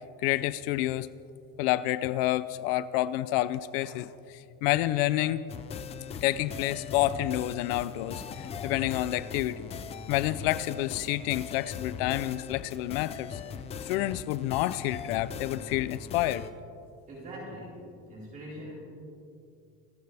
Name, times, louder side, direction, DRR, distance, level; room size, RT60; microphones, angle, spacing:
voice 1, 0.2-1.1 1.6-5.4 6.2-9.7 10.1-13.4 13.9-16.5, left 15 dB, 70° left, 16 dB, 0.6 m, -29 dB
sound 1, 5.5-16.5, left 6 dB, 20° left, 0.5 m, -40 dB
voice 2, 17.1-18.7, equal, 25° right, -7 dB, 4.4 m, -42 dB
28.5 x 14.5 x 3.4 m, 2.5 s
cardioid pair, 175°, 31 cm